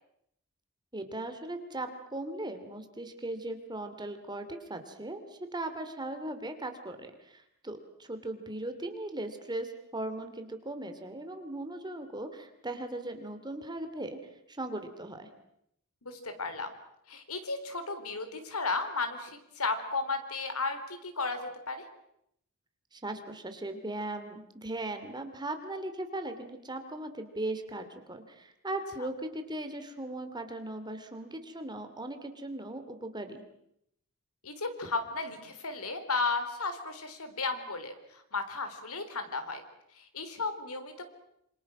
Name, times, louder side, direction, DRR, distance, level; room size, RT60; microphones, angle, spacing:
voice 1, 0.9-5.2 5.5-14.2 14.5-15.3 22.9-33.4, right 1 dB, 20° right, 7 dB, 2.7 m, -38 dB
voice 2, 16.0-16.7 17.1-21.8 34.4-39.6 40.0-41.0, left 3 dB, 75° left, 8 dB, 3.8 m, -34 dB
27.0 x 26.5 x 6.2 m, 0.77 s
head